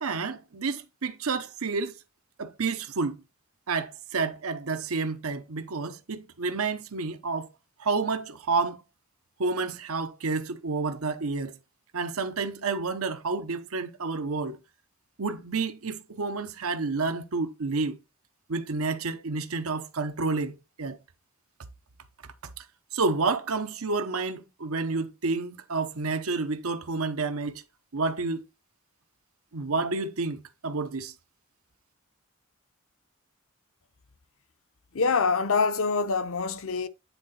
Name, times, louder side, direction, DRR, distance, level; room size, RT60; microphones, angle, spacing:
voice 1, 0.0-1.9 2.4-3.2 3.7-7.5 7.8-8.8 9.4-11.5 11.9-14.6 15.2-17.9 18.5-21.0 22.9-27.6 27.9-28.4 29.5-31.1, right 4 dB, 85° right, 0.9 m, -29 dB
voice 2, 34.9-36.9, left 4 dB, 70° left, 0.8 m, -25 dB
9.5 x 3.9 x 4.2 m
head